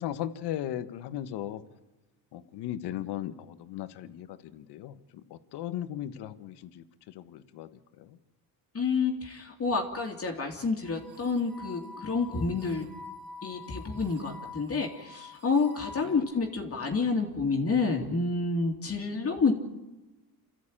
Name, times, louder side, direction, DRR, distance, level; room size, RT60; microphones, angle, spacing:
voice 1, 0.0-1.6 2.3-8.2 16.0-16.3, left 11 dB, 70° left, 11 dB, 1.4 m, -37 dB
voice 2, 8.7-12.9 13.4-19.5, left 4 dB, 35° left, 2 dB, 2.7 m, -29 dB
sound 1, 10.8-16.2, left 3 dB, 55° right, 4.1 m, -47 dB
28.0 x 14.0 x 8.8 m, 1.1 s
cardioid pair, 100°, 42 cm